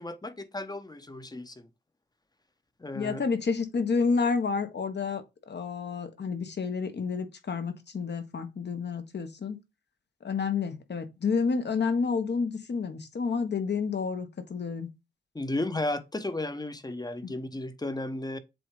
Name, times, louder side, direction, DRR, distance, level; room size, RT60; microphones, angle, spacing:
voice 1, 0.0-1.6 2.8-3.2 15.3-18.4, left 2 dB, 20° left, 0.9 m, -34 dB
voice 2, 2.9-9.6 10.2-14.9 17.2-17.3, left 5 dB, 60° left, 1.3 m, -30 dB
7.6 x 2.6 x 4.9 m
cardioid pair, 70°, 20 cm